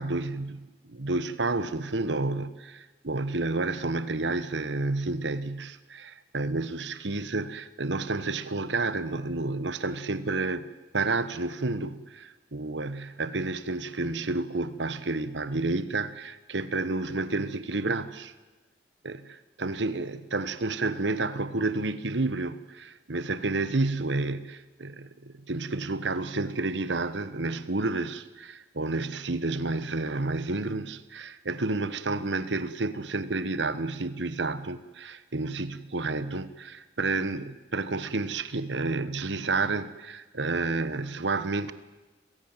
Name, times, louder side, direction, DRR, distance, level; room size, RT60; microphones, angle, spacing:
voice 1, 0.0-10.6 10.9-18.3 19.0-41.7, right 3 dB, 85° right, 1.2 m, -30 dB
29.5 x 16.5 x 9.0 m
head